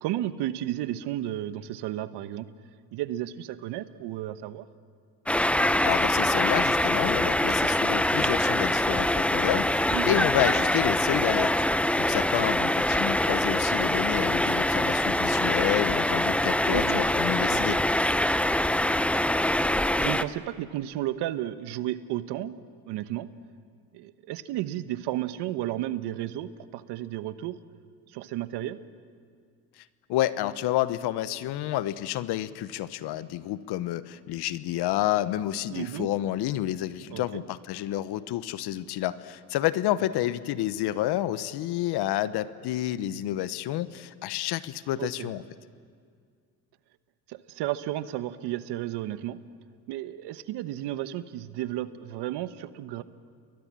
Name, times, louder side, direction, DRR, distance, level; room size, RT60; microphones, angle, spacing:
voice 1, 0.0-2.5 2.9-4.7 9.9-10.3 16.7-17.0 17.5-17.8 19.1-19.2 19.6-22.5 22.9-23.3 23.9-27.6 28.1-28.8 35.7-36.1 37.1-37.4 45.0-45.3 47.3-49.4 49.9-53.0, right 13 dB, 75° right, 13 dB, 1.2 m, -33 dB
sound 1, 5.3-20.2, left 1 dB, 5° left, 0.8 m, -24 dB
voice 2, 5.8-11.5 11.9-17.8 29.8-45.4, left 13 dB, 70° left, 15 dB, 1.1 m, -29 dB
30.0 x 22.0 x 7.5 m, 2.1 s
supercardioid pair, 80°, 41 cm